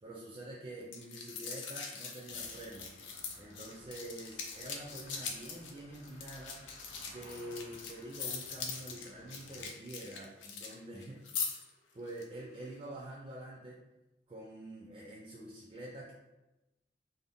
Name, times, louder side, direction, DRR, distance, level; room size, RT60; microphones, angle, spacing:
voice 1, 0.0-2.9 3.4-6.7 7.0-11.6 11.9-13.8 14.3-16.1, right 1 dB, 25° right, -4 dB, 0.3 m, -46 dB
sound 1, 0.9-10.7 11.0-11.7 12.1-12.2, left 5 dB, 90° left, 0.4 m, -42 dB
sound 2, 2.3-9.7, left 1 dB, 35° left, 0.5 m, -58 dB
2.6 x 2.0 x 3.4 m, 1.0 s
head